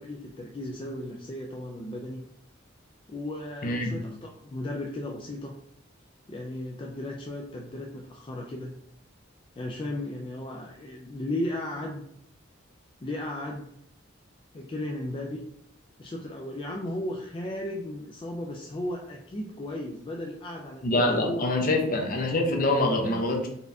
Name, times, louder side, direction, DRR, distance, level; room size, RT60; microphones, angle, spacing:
voice 1, 0.0-2.2 3.1-5.5 6.3-8.7 9.6-12.0 13.0-13.7 14.5-15.4 16.0-21.9, left 1 dB, 25° left, 0 dB, 0.4 m, -35 dB
voice 2, 3.6-4.0 20.8-23.5, left 2 dB, 45° left, 2 dB, 0.8 m, -25 dB
4.3 x 3.4 x 2.6 m, 0.70 s
head